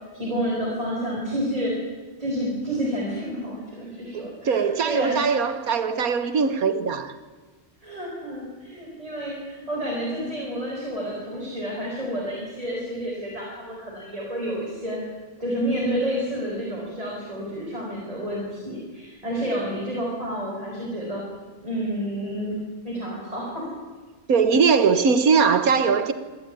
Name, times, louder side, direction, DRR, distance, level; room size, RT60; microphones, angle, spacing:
voice 1, 0.1-1.7 2.2-5.2 7.8-15.0 15.4-21.2 21.6-22.5 22.8-23.7, equal, 25° right, 5.8 m, -29 dB
voice 2, 4.1-7.1 24.3-26.1, right 5 dB, 75° right, 1.8 m, -21 dB
26.5 x 12.5 x 9.4 m
omnidirectional pair, 1.5 m